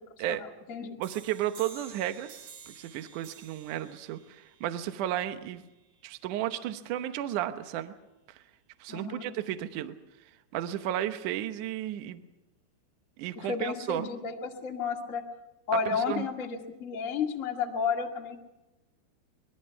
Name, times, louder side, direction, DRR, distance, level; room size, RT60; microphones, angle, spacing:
voice 1, 0.3-1.0 8.9-9.3 13.3-15.2 15.7-18.4, left 5 dB, 50° left, 1 dB, 0.9 m, -32 dB
sound 1, 1.0-6.4, right 6 dB, 50° right, 3.7 m, -52 dB
voice 2, 1.0-5.6 6.0-7.9 8.3-8.4 8.8-10.0 10.5-12.2 13.2-14.1 15.9-16.3, right 12 dB, 80° right, 9 dB, 1.8 m, -33 dB
24.5 x 21.5 x 5.8 m, 0.97 s
omnidirectional pair, 5.2 m